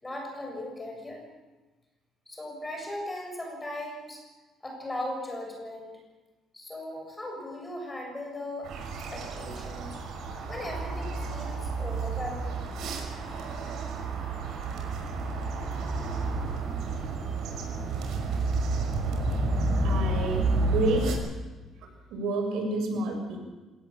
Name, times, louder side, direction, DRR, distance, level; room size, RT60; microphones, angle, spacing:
voice 1, 0.0-1.2 2.3-4.2 4.6-6.0 6.5-8.7 9.1-10.0 10.5-12.7, left 1 dB, 10° left, 1 dB, 7.4 m, -38 dB
sound 1, 8.6-21.1, right 3 dB, 65° right, 5.9 m, -30 dB
voice 2, 19.8-21.1 22.1-23.4, right 2 dB, 85° right, 3 dB, 7.5 m, -29 dB
26.5 x 19.0 x 7.4 m, 1.2 s
cardioid pair, 165°, 0 cm